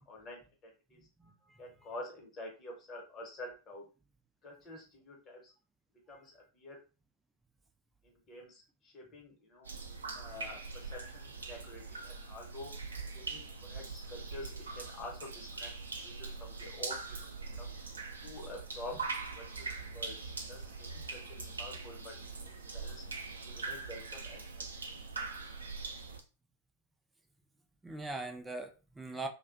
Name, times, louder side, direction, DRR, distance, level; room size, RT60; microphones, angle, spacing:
voice 1, 0.1-1.0 1.6-3.9 4.4-5.5 6.1-6.8 8.0-9.7 10.1-12.7 13.1-15.7 16.0-17.2 17.6-17.7 18.2-22.1 22.4-23.0 23.5-24.7, left 1 dB, 25° left, 0 dB, 1.0 m, -48 dB
voice 2, 1.2-1.6 27.8-29.3, right 2 dB, 10° right, 5 dB, 0.4 m, -41 dB
sound 1, 9.6-26.2, right 4 dB, 70° right, 0.4 m, -42 dB
2.3 x 2.1 x 2.5 m, 0.33 s
figure-of-eight pair, 90°, 0 cm